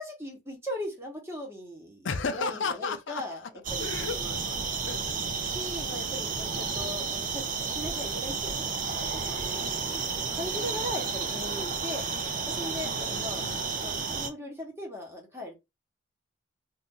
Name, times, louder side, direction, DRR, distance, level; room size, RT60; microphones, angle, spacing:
voice 1, 0.0-3.4 3.7-4.5 5.4-10.0 10.4-12.1 12.4-13.5 13.8-15.6, left 1 dB, 15° right, 1.2 m, -39 dB
voice 2, 2.0-3.2 3.8-5.4 6.7-6.8 12.8-13.6, left 5 dB, 75° left, 0.5 m, -35 dB
sound 1, 3.6-14.3, right 5 dB, 45° right, 0.6 m, -32 dB
2.6 x 2.5 x 3.7 m
head